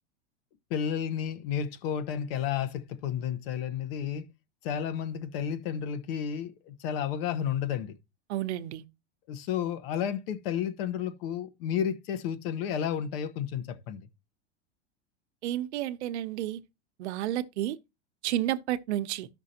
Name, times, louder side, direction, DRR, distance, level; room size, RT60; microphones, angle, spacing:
voice 1, 0.7-4.2 4.6-7.9 9.3-14.0, left 8 dB, 60° left, 1.2 m, -32 dB
voice 2, 8.3-8.8 15.4-16.6 17.0-17.8 18.2-19.3, right 13 dB, 75° right, 0.9 m, -31 dB
13.5 x 6.0 x 2.8 m
supercardioid pair, 160°, 34 cm